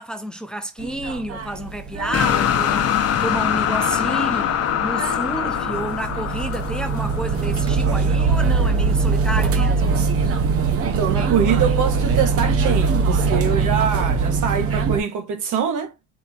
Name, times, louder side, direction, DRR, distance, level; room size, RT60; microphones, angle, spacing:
voice 1, 0.0-2.9 3.2-4.6 4.8-10.0, right 1 dB, 5° left, 0.5 m, -30 dB
sound 1, 0.8-15.0, right 4 dB, 50° right, 0.9 m, -22 dB
sound 2, 2.1-8.2, left 9 dB, 55° left, 0.7 m, -23 dB
voice 2, 10.8-15.9, right 7 dB, 85° right, 1.4 m, -24 dB
4.5 x 2.8 x 4.1 m
cardioid pair, 175°, 30 cm